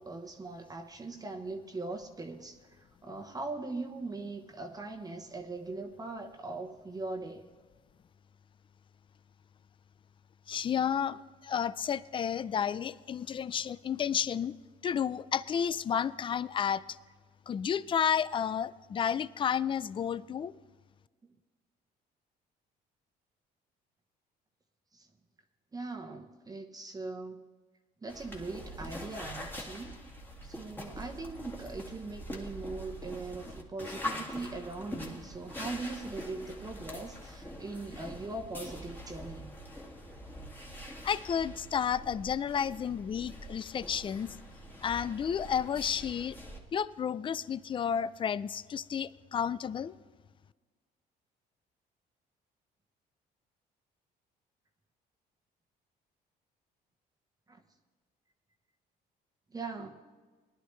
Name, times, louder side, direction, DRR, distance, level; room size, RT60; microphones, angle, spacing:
voice 1, 0.0-7.5 21.2-21.3 24.9-25.1 25.7-27.5 28.0-30.0 30.4-39.6 57.5-57.6 59.5-60.0, right 3 dB, 20° right, 3 dB, 1.0 m, -40 dB
voice 2, 10.5-14.5 14.8-16.8 17.5-20.5 41.0-44.4 44.8-46.4 46.7-49.9, left 8 dB, 30° left, 18 dB, 0.4 m, -31 dB
sound 1, 28.1-46.6, equal, 10° left, 1.8 m, -44 dB
18.5 x 11.0 x 3.2 m, 1.4 s
cardioid pair, 110°, 17 cm